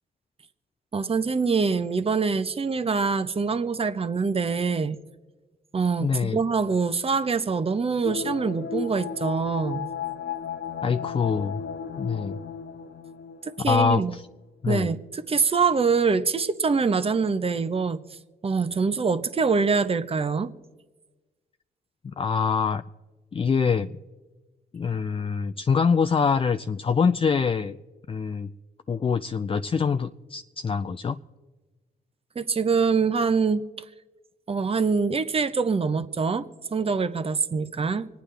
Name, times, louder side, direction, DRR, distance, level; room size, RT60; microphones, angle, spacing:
voice 1, 0.9-5.0 5.7-9.9 13.6-14.1 14.7-18.0 18.4-20.5 32.3-33.6 34.5-38.1, right 5 dB, 35° right, 11 dB, 0.9 m, -24 dB
voice 2, 6.0-6.4 10.8-11.6 12.0-12.4 13.6-14.2 14.6-14.9 22.0-22.8 23.3-24.0 24.7-27.8 28.1-28.5 28.9-31.2, left 6 dB, 30° left, 9 dB, 0.5 m, -24 dB
sound 1, 8.0-14.0 14.3-14.4, left 7 dB, 75° left, 1.0 m, -34 dB
26.0 x 9.1 x 3.4 m, 1.2 s
supercardioid pair, 55°, 18 cm